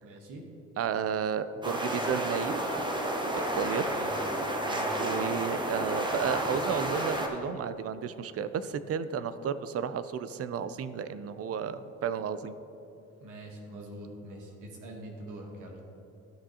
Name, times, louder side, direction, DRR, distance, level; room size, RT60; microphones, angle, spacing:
voice 1, 0.0-0.4 3.9-4.1 4.6-5.0 13.2-15.8, right 1 dB, 85° right, 0 dB, 1.3 m, -44 dB
voice 2, 0.8-2.6 3.3-3.8 5.0-12.6, right 7 dB, 50° right, 13 dB, 0.5 m, -32 dB
sound 1, 1.6-7.3, right 1 dB, 15° right, 0.9 m, -31 dB
13.0 x 6.1 x 2.8 m, 2.7 s
cardioid pair, 90°, 30 cm